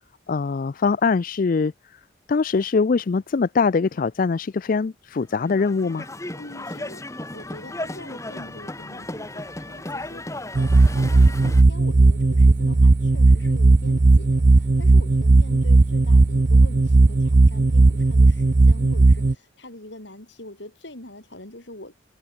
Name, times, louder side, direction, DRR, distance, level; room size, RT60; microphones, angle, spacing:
voice 1, 0.3-1.7 2.3-6.1, left 4 dB, 45° left, 0.4 m, -22 dB
sound 1, 5.3-11.6, left 1 dB, 15° left, 1.9 m, -35 dB
voice 2, 6.4-21.9, left 1 dB, 65° left, 5.2 m, -43 dB
sound 2, 10.6-19.3, right 2 dB, 40° right, 0.5 m, -16 dB
head